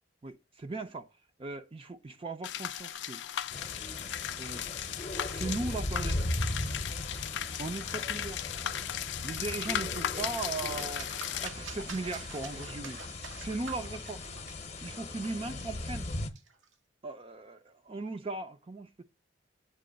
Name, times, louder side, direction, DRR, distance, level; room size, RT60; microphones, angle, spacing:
voice 1, 0.2-1.1 1.4-3.2 4.4-4.7 5.2-6.2 7.6-8.4 9.2-11.2 11.4-14.3 14.8-16.1 17.0-19.0, right 3 dB, 30° right, 0.4 m, -38 dB
sound 1, 2.4-11.5, left 10 dB, 65° left, 0.4 m, -37 dB
sound 2, 3.5-16.3, left 2 dB, 35° left, 0.8 m, -38 dB
sound 3, 9.2-16.7, right 5 dB, 85° right, 0.9 m, -48 dB
7.7 x 3.0 x 5.1 m
head